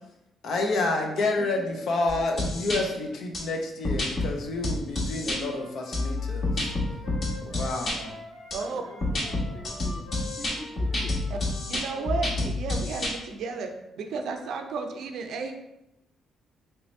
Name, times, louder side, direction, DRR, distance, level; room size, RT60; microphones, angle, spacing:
voice 1, 0.4-6.7 7.4-8.2, left 2 dB, 70° left, 2 dB, 0.6 m, -29 dB
voice 2, 1.2-1.8 2.1-2.4 8.6-11.1, equal, 5° right, -4 dB, 0.6 m, -45 dB
sound 1, 2.1-2.8 3.3-3.4 3.8-4.3 4.6-5.4 5.9-8.0 8.5-8.6 9.0-13.1, left 2 dB, 55° left, 1.1 m, -28 dB
Wind instrument woodwind instrument, 5.3-12.3, left 2 dB, 85° left, 1.1 m, -46 dB
voice 3, 8.5-8.8 11.3-11.4 11.7-13.7 14.0-15.5, right 4 dB, 75° right, 5 dB, 0.4 m, -33 dB
3.2 x 2.8 x 3.1 m, 0.89 s
cardioid pair, 90°, 0 cm